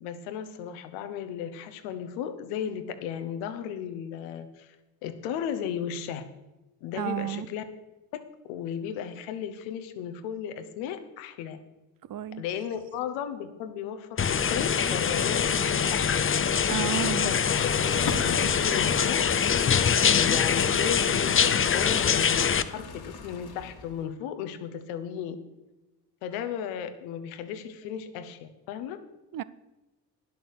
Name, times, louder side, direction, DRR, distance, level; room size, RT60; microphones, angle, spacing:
voice 1, 0.0-4.8 5.0-6.2 6.8-7.6 8.1-8.2 8.5-11.6 12.4-16.1 17.2-17.7 18.2-19.6 20.0-25.4 26.2-29.0, left 8 dB, 85° left, 10 dB, 1.0 m, -35 dB
voice 2, 7.0-7.5 12.0-12.4 16.7-17.3 29.3-29.4, right 10 dB, 45° right, 18 dB, 0.6 m, -32 dB
sound 1, 14.2-22.6, left 7 dB, 25° left, 0.6 m, -24 dB
sound 2, 17.0-24.0, left 4 dB, 50° left, 1.6 m, -39 dB
10.5 x 7.0 x 6.5 m, 1.0 s
hypercardioid pair, 45°, 47 cm